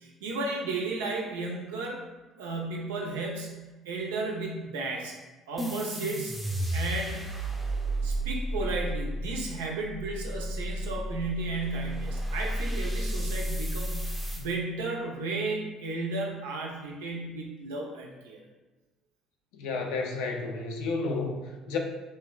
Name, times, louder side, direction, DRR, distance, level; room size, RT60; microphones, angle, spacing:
voice 1, 0.0-2.0 2.4-3.6 3.8-5.1 5.5-6.3 6.7-7.2 8.0-18.4, right 3 dB, 85° right, -1 dB, 0.4 m, -34 dB
sound 1, 5.6-14.5, right 1 dB, 5° right, 0.6 m, -32 dB
voice 2, 19.5-21.8, left 3 dB, 75° left, 1 dB, 0.4 m, -31 dB
3.2 x 2.1 x 2.3 m, 1.1 s
hypercardioid pair, 60°, 0 cm